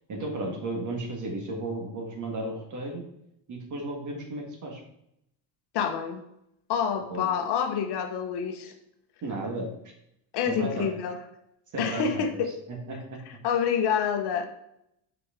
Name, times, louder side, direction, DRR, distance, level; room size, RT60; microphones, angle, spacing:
voice 1, 0.1-3.0 3.5-4.8 7.1-7.3 9.2-9.7 10.4-10.9 11.7-12.4 12.7-13.2, right 2 dB, 40° right, 1 dB, 1.8 m, -34 dB
voice 2, 5.7-6.2 6.7-8.7 10.3-11.2 11.8-12.5 13.4-14.4, left 7 dB, 60° left, 5 dB, 1.0 m, -27 dB
6.3 x 5.0 x 3.7 m, 0.78 s
cardioid pair, 150°, 44 cm